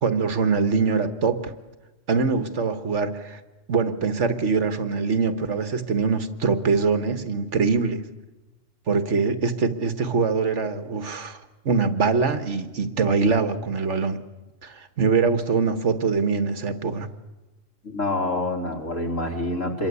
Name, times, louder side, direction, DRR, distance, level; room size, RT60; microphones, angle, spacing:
voice 1, 0.0-1.5 2.1-3.4 3.7-8.0 8.9-11.4 11.6-14.2 14.6-17.1, right 5 dB, 65° right, 10 dB, 1.7 m, -23 dB
voice 2, 17.8-19.9, left 1 dB, 75° left, 2 dB, 4.2 m, -27 dB
27.0 x 22.0 x 8.3 m, 1.1 s
omnidirectional pair, 1.3 m